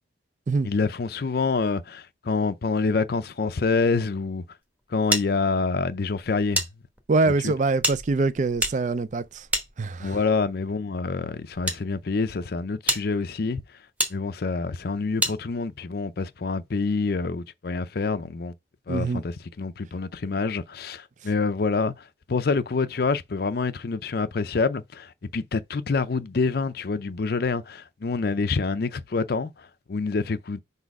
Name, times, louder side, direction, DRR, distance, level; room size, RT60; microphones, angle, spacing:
voice 1, 0.6-4.4 4.9-6.7 7.4-7.5 10.0-13.8 14.1-18.5 18.9-30.6, left 4 dB, 55° left, 0.5 m, -27 dB
sound 1, 5.1-6.7 7.0-7.1 7.8-10.3 11.1-11.8 12.4-12.5 12.9-13.0 14.0-14.1 15.2-15.4, equal, 10° right, 1.0 m, -28 dB
voice 2, 7.1-9.5 9.8-10.2 18.9-19.2, right 3 dB, 40° right, 0.4 m, -24 dB
5.4 x 4.1 x 4.7 m
head